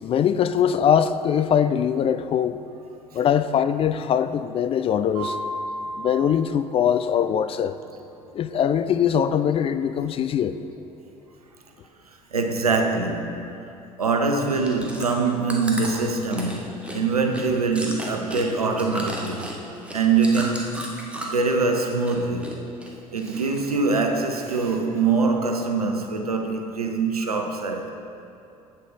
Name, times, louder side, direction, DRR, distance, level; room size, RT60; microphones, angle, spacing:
voice 1, 0.0-2.6 3.1-5.4 6.0-7.8 8.3-10.6, left 8 dB, 30° left, 0.4 m, -22 dB
Mallet percussion, 5.1-7.8, right 1 dB, 20° right, 2.3 m, -35 dB
voice 2, 12.3-13.5 14.0-19.5 19.9-20.8 21.3-22.5 23.1-27.9, right 4 dB, 85° right, 0.7 m, -23 dB
Chewing mastication, 14.4-21.5 21.8-22.5 22.8-23.7 24.2-24.3, right 1 dB, 5° right, 1.5 m, -35 dB
8.5 x 7.6 x 4.8 m
figure-of-eight pair, 60°, 19 cm